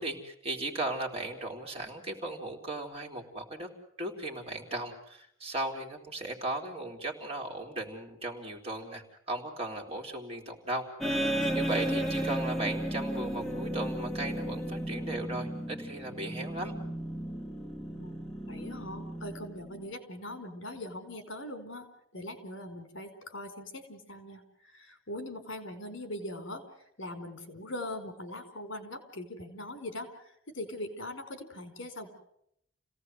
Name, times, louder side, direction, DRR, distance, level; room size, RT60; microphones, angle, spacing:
voice 1, 0.0-3.7 4.0-10.9 11.5-16.7, right 2 dB, 30° right, 1 dB, 3.7 m, -37 dB
sound 1, 11.0-19.9, right 1 dB, ahead, 2.6 m, -34 dB
voice 2, 18.5-21.9 22.1-32.1, left 1 dB, 70° left, 8 dB, 4.6 m, -41 dB
29.5 x 17.5 x 8.1 m, 0.74 s
head